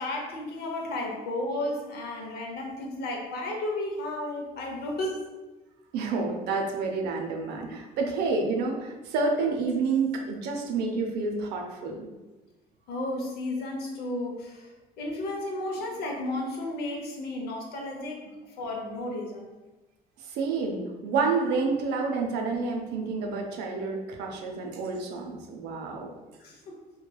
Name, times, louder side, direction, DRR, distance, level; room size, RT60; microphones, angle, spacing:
voice 1, 0.0-5.2 12.9-14.7 15.0-18.2 18.6-19.5 26.4-26.7, left 1 dB, 70° left, 0 dB, 0.7 m, -33 dB
voice 2, 5.9-12.2 20.3-26.1, right 4 dB, 80° right, 2 dB, 0.5 m, -29 dB
3.1 x 2.2 x 2.2 m, 1.1 s
cardioid pair, 110°, 17 cm